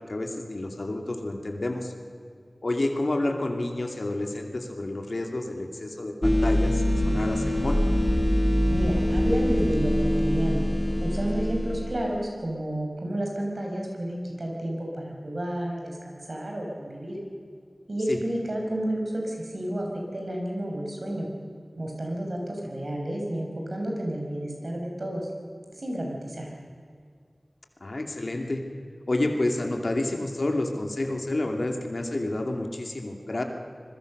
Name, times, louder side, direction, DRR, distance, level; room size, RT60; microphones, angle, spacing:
voice 1, 0.1-1.9 2.6-7.8 18.1-18.2 27.8-28.6 29.1-33.4, left 2 dB, 70° left, 3 dB, 2.7 m, -29 dB
sound 1, 6.2-12.1, equal, 15° left, 1.3 m, -24 dB
voice 2, 8.7-10.6 11.0-17.2 17.9-19.9 20.1-21.3 21.8-25.3 25.8-26.5, right 1 dB, 70° right, 0 dB, 6.3 m, -31 dB
26.5 x 21.5 x 6.7 m, 2.1 s
wide cardioid pair, 50°, 0 cm